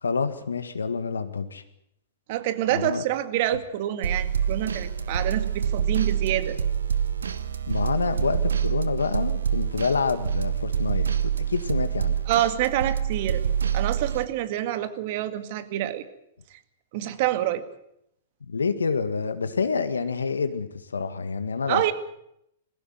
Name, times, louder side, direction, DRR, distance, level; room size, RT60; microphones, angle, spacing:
voice 1, 0.0-1.6 2.7-3.0 7.7-12.2 18.4-21.9, left 5 dB, 85° left, 10 dB, 1.9 m, -27 dB
voice 2, 2.3-6.6 12.3-13.4 13.7-16.0 16.9-17.6 21.7-21.9, right 13 dB, 50° right, 11 dB, 2.0 m, -27 dB
sound 1, 4.0-14.3, right 8 dB, 80° right, 1.3 m, -26 dB
21.0 x 16.5 x 9.4 m, 0.77 s
hypercardioid pair, 110°, 0 cm